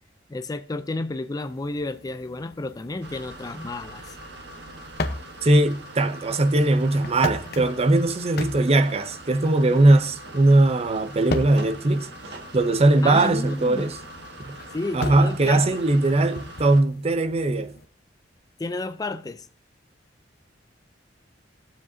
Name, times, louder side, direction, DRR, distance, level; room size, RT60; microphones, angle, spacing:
voice 1, 0.3-4.1 13.0-13.9 14.7-15.8 18.6-19.5, left 2 dB, 20° left, 0.4 m, -32 dB
sound 1, 1.3-17.9, left 2 dB, 60° left, 0.8 m, -38 dB
sound 2, 3.0-16.8, right 1 dB, 65° right, 1.6 m, -43 dB
voice 2, 5.4-12.1 12.5-14.0 14.5-14.6 14.9-17.8, right 2 dB, 35° right, 0.6 m, -20 dB
19.0 x 7.4 x 2.7 m
head